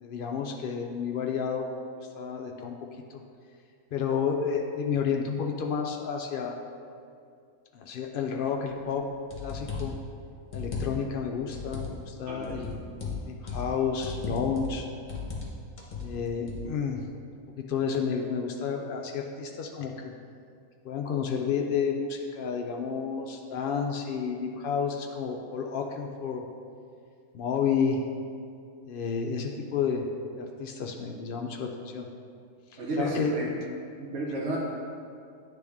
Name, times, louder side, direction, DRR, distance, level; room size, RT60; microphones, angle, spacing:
voice 1, 0.0-1.7 2.1-2.8 3.9-6.6 7.7-9.1 9.4-9.9 10.5-12.9 13.3-14.9 16.0-17.0 17.6-19.9 20.8-26.4 27.3-28.0 28.9-30.1 30.4-32.1 33.0-33.6, left 6 dB, 85° left, 2 dB, 0.4 m, -30 dB
sound 1, 8.8-8.9 9.3-10.0 10.5-11.2 11.5-12.0 12.4-13.7 14.0-14.8 15.1-15.5 15.8-16.6, left 4 dB, 35° left, 1.0 m, -36 dB
voice 2, 12.3-12.7 32.8-33.5 34.0-34.6, right 1 dB, 60° right, -5 dB, 1.1 m, -32 dB
10.0 x 3.4 x 3.5 m, 2.4 s
omnidirectional pair, 1.5 m